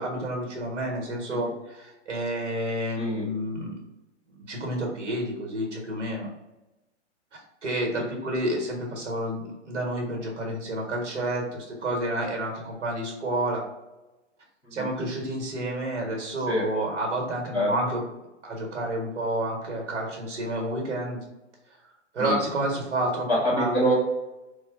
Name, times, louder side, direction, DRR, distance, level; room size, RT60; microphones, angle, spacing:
voice 1, 0.0-3.7 4.5-6.3 7.3-13.6 14.7-18.0 18.4-21.2 22.1-23.8, right 1 dB, 70° right, 0 dB, 1.4 m, -30 dB
voice 2, 3.0-3.3 8.1-8.2 14.6-14.9 16.5-16.7 17.5-17.7 22.2-22.4 23.3-23.9, equal, 5° left, -8 dB, 0.9 m, -26 dB
4.3 x 2.2 x 3.5 m, 1.0 s
hypercardioid pair, 175°, 37 cm